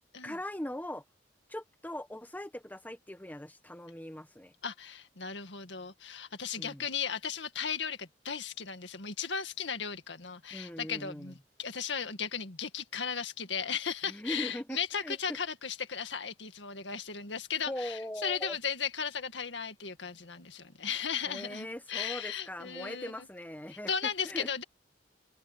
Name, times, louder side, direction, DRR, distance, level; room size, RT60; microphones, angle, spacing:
voice 1, 0.2-1.0 1.5-4.5 6.6-6.9 10.5-11.3 14.0-15.4 17.7-18.6 21.2-24.5, left 1 dB, 10° left, 1.4 m, -40 dB
voice 2, 4.6-23.3 23.9-24.6, left 6 dB, 85° left, 2.0 m, -36 dB
head